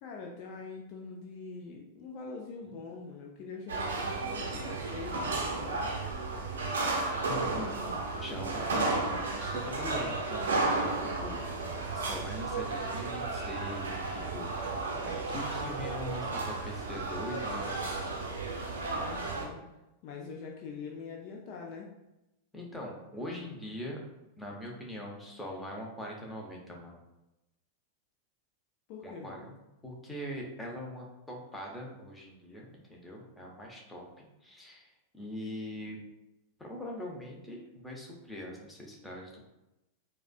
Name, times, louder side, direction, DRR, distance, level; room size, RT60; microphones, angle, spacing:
voice 1, 0.0-6.0 18.8-19.7 20.0-21.9 28.9-29.6, left 4 dB, 45° left, 0 dB, 0.4 m, -44 dB
sound 1, 3.7-19.5, right 3 dB, 65° right, 0.6 m, -33 dB
voice 2, 7.1-11.4 11.9-18.2 22.5-24.0 24.4-27.0 29.0-29.4 29.8-36.0 36.6-39.5, left 1 dB, 10° left, -1 dB, 0.8 m, -42 dB
4.7 x 2.2 x 2.4 m, 0.95 s
figure-of-eight pair, 90°, 0 cm